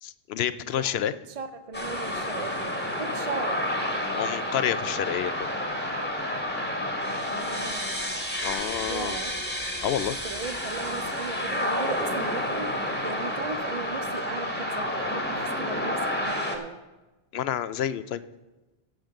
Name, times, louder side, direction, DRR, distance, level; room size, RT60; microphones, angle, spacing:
voice 1, 0.0-1.1 4.1-5.5 8.4-9.2 9.8-10.2 17.3-18.2, left 10 dB, 80° left, 15 dB, 0.8 m, -29 dB
voice 2, 0.7-1.0 1.4-3.6 7.1-8.0 8.9-9.4 10.2-16.8, right 5 dB, 50° right, 9 dB, 0.4 m, -37 dB
sound 1, 1.7-16.6, left 1 dB, 10° left, 1.3 m, -30 dB
15.5 x 5.2 x 6.4 m, 1.1 s
omnidirectional pair, 1.1 m